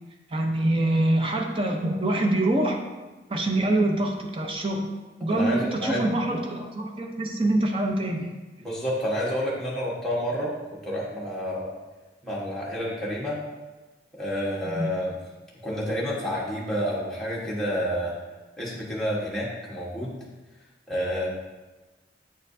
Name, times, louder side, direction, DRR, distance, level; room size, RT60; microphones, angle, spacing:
voice 1, 0.3-2.8 3.3-4.9 5.2-8.3 14.6-14.9, right 1 dB, 30° right, 1 dB, 0.7 m, -25 dB
voice 2, 5.3-6.0 8.6-10.6 10.8-11.7 12.2-13.4 14.2-15.1 15.6-18.1 18.6-20.2 20.9-21.3, equal, 5° left, -6 dB, 1.2 m, -29 dB
8.6 x 4.4 x 2.7 m, 1.2 s
head